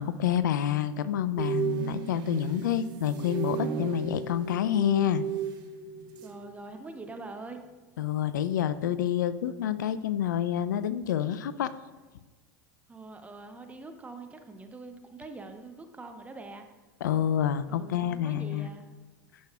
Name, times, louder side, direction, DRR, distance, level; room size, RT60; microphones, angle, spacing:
voice 1, 0.0-5.2 8.0-11.7 17.0-18.7, left 10 dB, 70° left, 14 dB, 0.4 m, -28 dB
sound 1, 1.4-6.5 6.8-7.1, right 8 dB, 45° right, 0.9 m, -34 dB
voice 2, 6.2-7.6 12.9-16.6 17.7-18.9, right 3 dB, 15° right, 6 dB, 0.7 m, -44 dB
10.0 x 6.2 x 2.3 m, 1.3 s
figure-of-eight pair, 85°, 10 cm